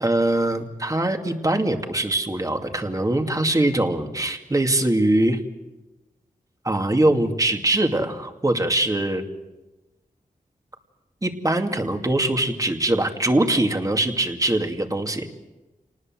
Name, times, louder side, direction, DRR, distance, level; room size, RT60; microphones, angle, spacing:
voice 1, 0.0-5.4 6.6-9.2 11.2-15.3, right 1 dB, 25° right, 5 dB, 2.5 m, -22 dB
28.0 x 19.5 x 7.8 m, 1.1 s
wide cardioid pair, 80°, 14 cm